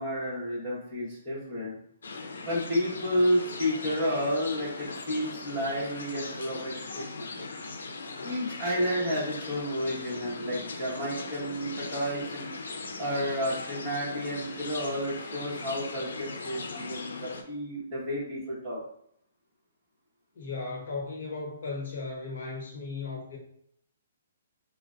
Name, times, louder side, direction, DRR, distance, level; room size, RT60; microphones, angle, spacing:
voice 1, 0.0-1.8 2.4-7.5 8.2-12.5 13.0-18.8, equal, 15° right, -8 dB, 1.2 m, -31 dB
sound 1, 2.0-17.4, left 3 dB, 85° left, 0.5 m, -39 dB
voice 2, 20.3-23.4, left 3 dB, 60° left, 0 dB, 1.0 m, -36 dB
3.8 x 2.1 x 2.5 m, 0.69 s
hypercardioid pair, 170°, 0 cm